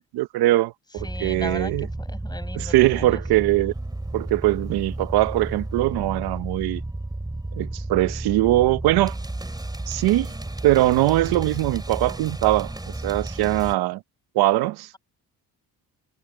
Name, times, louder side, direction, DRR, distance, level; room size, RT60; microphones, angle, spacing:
voice 1, 0.0-1.9 2.5-3.7 4.1-6.8 7.5-9.2 9.9-10.3 10.6-14.0 14.3-14.9, right 16 dB, 80° right, 0.9 m, -21 dB
voice 2, 1.0-3.2, left 2 dB, 10° left, 5.4 m, -37 dB
sound 1, 1.0-13.7, right 2 dB, 10° right, 3.2 m, -32 dB
cardioid pair, 100°, 38 cm